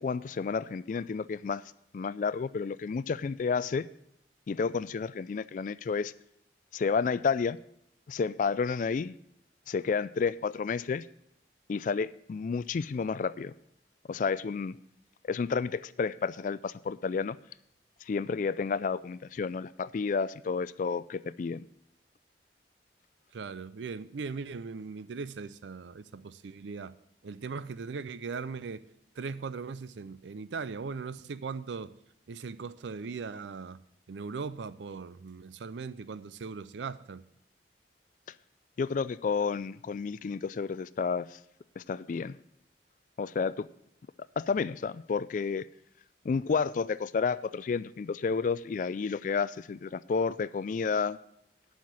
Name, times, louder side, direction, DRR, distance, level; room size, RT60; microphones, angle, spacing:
voice 1, 0.0-1.6 1.9-3.9 4.5-6.1 6.7-7.6 8.1-9.1 9.7-11.1 11.7-13.5 14.1-14.8 15.3-17.4 18.1-21.7 38.8-41.4 41.8-42.4 43.2-43.7 44.4-45.6 46.2-51.2, left 5 dB, 45° left, 0.3 m, -31 dB
voice 2, 23.3-26.9 27.2-28.8 29.2-31.9 32.3-33.8 34.1-37.2, right 5 dB, 85° right, 0.5 m, -39 dB
10.0 x 5.8 x 7.3 m
head